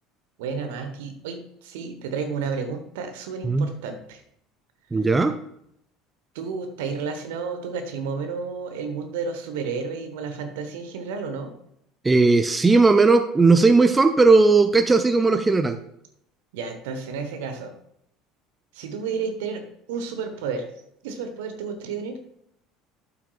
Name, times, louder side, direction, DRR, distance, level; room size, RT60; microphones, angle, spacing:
voice 1, 0.4-4.2 6.3-11.5 16.5-17.7 18.7-20.7 21.0-22.2, right 5 dB, 60° right, 7 dB, 1.1 m, -31 dB
voice 2, 4.9-5.3 12.0-15.8, right 3 dB, 15° right, 8 dB, 0.5 m, -17 dB
12.0 x 5.8 x 2.4 m, 0.74 s
figure-of-eight pair, 65°, 0 cm